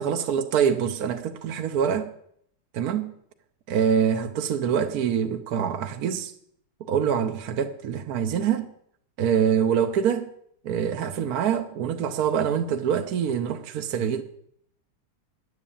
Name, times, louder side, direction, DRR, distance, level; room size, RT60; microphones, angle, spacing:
voice 1, 0.0-2.1 2.7-3.1 3.7-6.3 6.9-8.7 9.2-10.3 10.6-14.2, right 8 dB, 60° right, 1.1 m, -25 dB
10.0 x 8.2 x 8.6 m
omnidirectional pair, 2.3 m